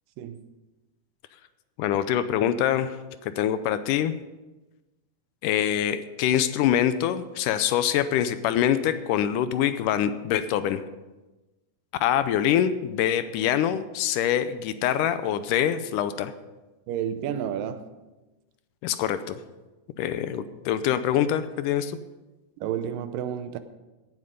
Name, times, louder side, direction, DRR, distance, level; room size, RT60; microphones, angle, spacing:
voice 1, 1.8-2.9 3.2-4.1 5.4-10.8 12.0-16.3 18.8-19.4 20.0-22.0, left 10 dB, 80° left, 2.1 m, -24 dB
voice 2, 16.9-17.8 22.6-23.6, right 9 dB, 85° right, 2.4 m, -30 dB
17.5 x 7.6 x 5.2 m
omnidirectional pair, 3.9 m